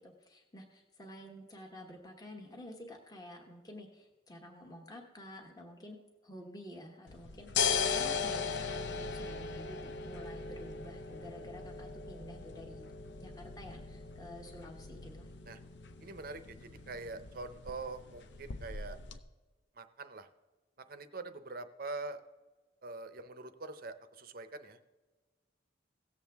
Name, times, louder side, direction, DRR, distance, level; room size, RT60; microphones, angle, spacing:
voice 1, 0.0-6.0 6.2-12.8 13.2-15.3, left 1 dB, 20° left, 1 dB, 1.1 m, -50 dB
sound 1, 7.1-19.2, left 5 dB, 65° left, 0.6 m, -38 dB
voice 2, 16.0-19.0 19.7-20.3 20.8-22.2 22.8-24.8, right 3 dB, 50° right, 10 dB, 0.6 m, -44 dB
17.0 x 7.3 x 3.5 m, 1.3 s
head